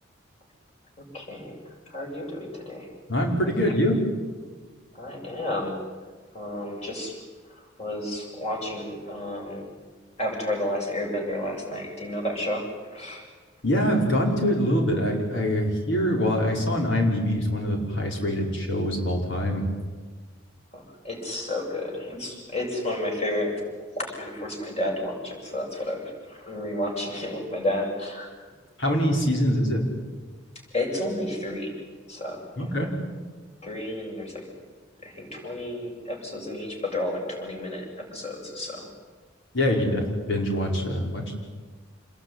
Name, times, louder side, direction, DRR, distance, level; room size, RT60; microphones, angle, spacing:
voice 1, 1.0-2.9 4.9-5.7 6.3-7.2 7.5-9.6 10.2-13.2 20.7-28.3 30.7-31.7 32.1-32.8 33.6-34.4 35.0-38.9, left 1 dB, 35° left, 0 dB, 7.9 m, -31 dB
voice 2, 3.1-4.0 13.6-19.6 28.8-29.8 32.6-32.9 39.5-41.4, equal, 65° left, 1 dB, 5.3 m, -24 dB
27.5 x 22.0 x 9.8 m, 1.4 s
head